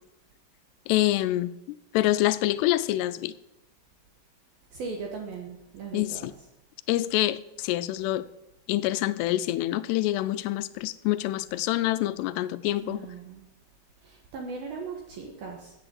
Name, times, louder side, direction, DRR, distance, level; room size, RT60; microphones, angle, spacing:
voice 1, 0.9-1.6 1.9-3.3 5.9-6.3 6.9-8.2 8.7-13.1, left 15 dB, 85° left, 13 dB, 2.4 m, -26 dB
voice 2, 4.7-6.2 12.8-13.5 14.0-15.7, right 4 dB, 65° right, 1 dB, 3.0 m, -38 dB
12.0 x 8.7 x 7.6 m, 0.91 s
omnidirectional pair, 5.2 m